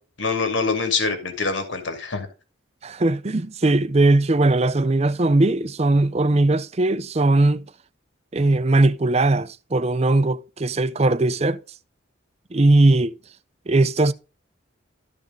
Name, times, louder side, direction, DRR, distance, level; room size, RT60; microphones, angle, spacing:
voice 1, 0.2-2.3, left 4 dB, 65° left, 2.4 m, -24 dB
voice 2, 2.8-7.6 8.3-11.6 12.5-13.1 13.7-14.1, right 2 dB, 30° right, 0.5 m, -19 dB
13.0 x 5.1 x 3.8 m
head